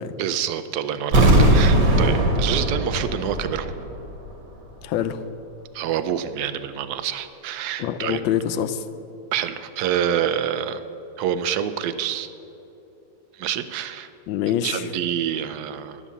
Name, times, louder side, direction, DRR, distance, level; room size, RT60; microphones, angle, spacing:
voice 1, 0.2-3.8 5.7-8.2 9.3-10.8 11.2-12.3 13.3-14.1 14.6-16.0, right 9 dB, 70° right, 11 dB, 1.0 m, -27 dB
sound 1, 1.1-4.0 4.3-4.4, right 1 dB, 50° right, 1.5 m, -19 dB
voice 2, 1.3-1.6 4.8-5.2 7.8-8.8 14.3-14.8, left 10 dB, 85° left, 11 dB, 1.3 m, -25 dB
11.0 x 7.4 x 7.0 m, 3.0 s
omnidirectional pair, 2.1 m